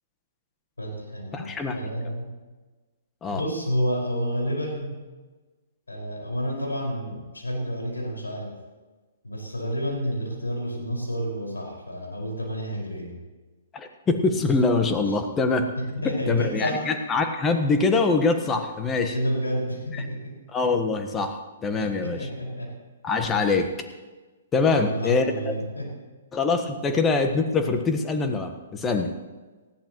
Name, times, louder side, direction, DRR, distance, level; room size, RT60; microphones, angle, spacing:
voice 1, 0.8-2.3 3.3-4.9 5.9-8.6 9.2-13.2 15.8-16.9 19.1-20.3 21.8-22.7 24.7-25.9, equal, 85° left, -1 dB, 5.4 m, -30 dB
voice 2, 1.3-1.8 3.2-3.4 13.7-15.7 16.0-19.1 20.5-22.2 23.0-23.7 24.5-25.5 26.3-29.1, left 3 dB, 15° left, 6 dB, 1.4 m, -24 dB
19.0 x 15.0 x 3.1 m, 1.3 s
figure-of-eight pair, 125°, 0 cm